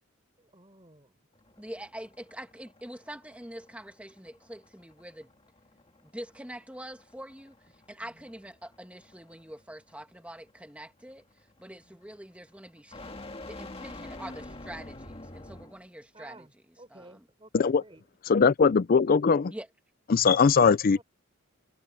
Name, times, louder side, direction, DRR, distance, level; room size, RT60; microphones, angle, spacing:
voice 1, 0.4-1.3 8.0-8.3 11.8-12.1 16.1-18.0 20.9-21.0, right 2 dB, 25° right, 4.4 m, -53 dB
sound 1, 1.3-15.9, left 2 dB, 25° left, 2.0 m, -48 dB
voice 2, 1.6-5.3 6.1-7.5 7.9-11.2 11.6-13.1 13.5-16.5 16.9-17.0 19.5-19.7, right 1 dB, 5° right, 2.2 m, -44 dB
voice 3, 18.3-19.5 20.1-21.0, left 5 dB, 45° left, 0.4 m, -21 dB
head